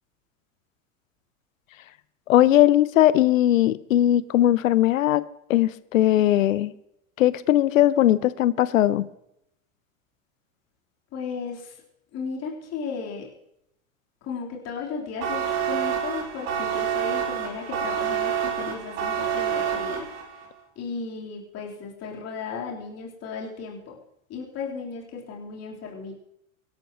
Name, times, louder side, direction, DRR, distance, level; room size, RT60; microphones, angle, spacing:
voice 1, 2.3-6.7 7.2-9.1, left 13 dB, 70° left, 18 dB, 0.8 m, -19 dB
voice 2, 11.1-11.8 12.1-13.3 14.2-20.1 20.8-24.0 24.3-26.2, left 5 dB, 40° left, -3 dB, 4.0 m, -35 dB
sound 1, 15.2-20.5, right 8 dB, 55° right, 3.6 m, -28 dB
24.5 x 12.5 x 3.1 m, 0.79 s
hypercardioid pair, 95°, 41 cm